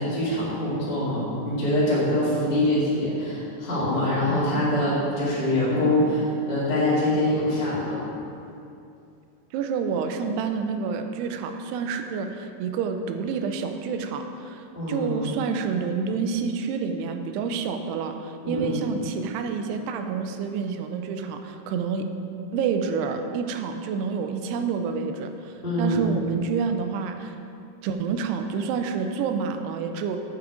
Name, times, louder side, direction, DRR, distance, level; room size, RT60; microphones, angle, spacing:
voice 1, 0.0-8.0 14.7-15.2 18.4-18.8 25.6-26.3, left 1 dB, 20° left, -10 dB, 1.8 m, -24 dB
voice 2, 9.5-22.1 22.5-27.4 27.8-30.2, right 5 dB, 85° right, 6 dB, 2.6 m, -28 dB
8.6 x 8.0 x 4.9 m, 2.5 s
omnidirectional pair, 4.7 m